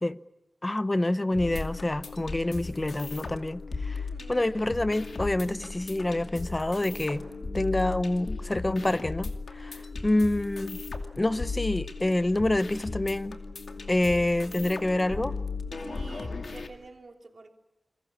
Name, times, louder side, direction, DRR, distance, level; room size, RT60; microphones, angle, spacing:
voice 1, 0.6-4.0 4.3-7.2 7.5-10.8 11.2-13.4 13.9-15.3, left 1 dB, 30° left, 0.9 m, -27 dB
sound 1, 1.3-16.7, left 4 dB, 75° left, 2.4 m, -37 dB
voice 2, 3.9-4.5 9.8-10.0 15.8-17.5, right 3 dB, 65° right, 3.3 m, -48 dB
28.5 x 22.0 x 7.3 m
wide cardioid pair, 65°, 0 cm